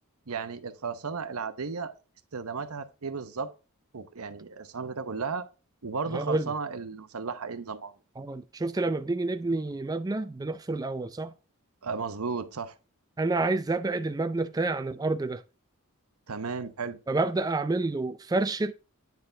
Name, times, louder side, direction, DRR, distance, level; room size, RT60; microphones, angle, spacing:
voice 1, 0.3-1.9 2.3-3.5 3.9-5.5 5.8-7.9 11.8-12.7 16.3-17.0, right 5 dB, 85° right, 0.9 m, -34 dB
voice 2, 6.1-6.5 8.2-11.3 13.2-15.4 17.1-18.7, right 2 dB, 15° right, 0.4 m, -29 dB
9.4 x 4.5 x 3.4 m
head